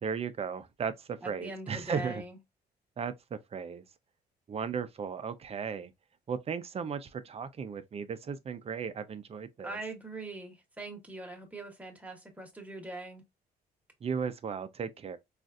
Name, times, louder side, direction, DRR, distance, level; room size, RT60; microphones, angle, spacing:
voice 1, 0.0-2.2 3.0-3.8 4.5-5.9 6.3-9.8 14.0-15.2, right 6 dB, 35° right, 0.5 m, -36 dB
voice 2, 1.2-2.4 9.6-13.2, right 2 dB, 10° right, 1.1 m, -42 dB
3.8 x 2.5 x 2.5 m
cardioid pair, 105°, 17 cm